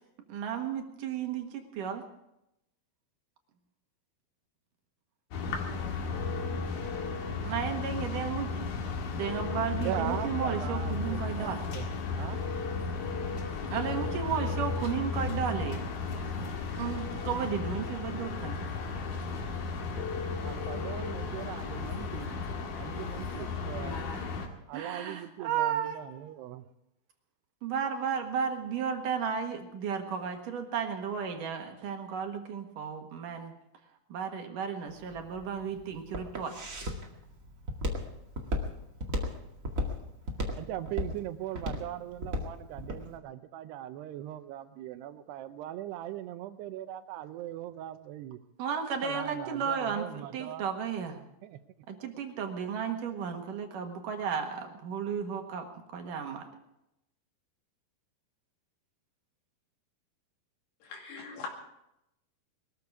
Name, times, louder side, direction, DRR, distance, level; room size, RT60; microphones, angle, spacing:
voice 1, 0.3-2.0 7.4-8.5 9.1-11.6 13.7-15.8 16.8-18.6 24.1-24.2 24.7-26.3 27.6-33.5 34.1-36.5 48.6-50.1 50.3-51.2 51.9-55.7 55.9-56.4, right 7 dB, 60° right, 4 dB, 2.8 m, -33 dB
sound 1, 5.3-24.5, left 4 dB, 60° left, 3.4 m, -34 dB
voice 2, 9.8-12.4 20.4-22.3 22.7-24.1 24.7-26.7 40.6-48.4 49.0-50.7 51.4-51.6, right 12 dB, 80° right, 11 dB, 2.9 m, -40 dB
Walk footsteps, 34.9-43.0, left 1 dB, 40° right, 1.2 m, -34 dB
voice 3, 60.8-61.5, left 6 dB, 80° left, 0 dB, 4.5 m, -41 dB
21.5 x 14.0 x 4.8 m, 0.84 s
omnidirectional pair, 4.8 m